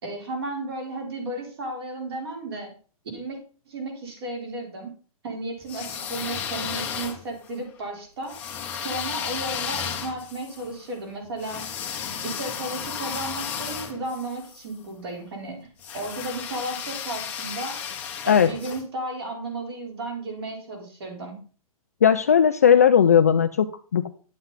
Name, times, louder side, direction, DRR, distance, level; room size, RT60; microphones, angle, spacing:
voice 1, 0.0-2.7 3.1-3.4 3.7-4.9 5.2-8.4 8.7-11.7 12.2-15.7 15.9-17.8 18.2-21.4, right 2 dB, 40° right, 2 dB, 4.2 m, -34 dB
sound 1, 5.6-7.5 8.3-14.6 15.8-18.8, left 7 dB, 10° left, 0.9 m, -33 dB
voice 2, 22.0-24.1, left 8 dB, 25° left, 8 dB, 0.3 m, -17 dB
11.0 x 7.8 x 4.0 m, 0.39 s
hypercardioid pair, 175°, 19 cm